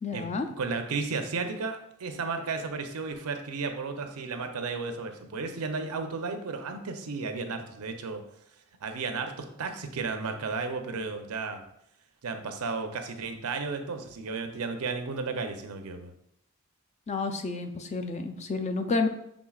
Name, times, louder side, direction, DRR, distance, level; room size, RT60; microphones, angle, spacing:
voice 1, 0.0-0.5 17.1-19.1, left 3 dB, 30° left, 5 dB, 0.4 m, -30 dB
voice 2, 0.6-8.2 8.8-11.6 12.2-16.1, right 4 dB, 80° right, 6 dB, 0.6 m, -33 dB
6.0 x 3.7 x 2.3 m, 0.76 s
head